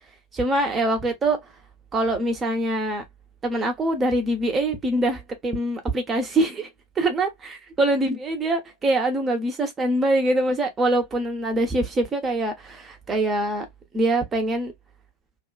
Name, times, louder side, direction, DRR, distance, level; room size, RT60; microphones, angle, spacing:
voice 1, 0.3-1.4 1.9-3.0 3.4-6.7 7.0-13.6 13.9-14.7, right 1 dB, 20° right, 1.0 m, -24 dB
2.8 x 2.5 x 2.2 m
figure-of-eight pair, 90°, 0 cm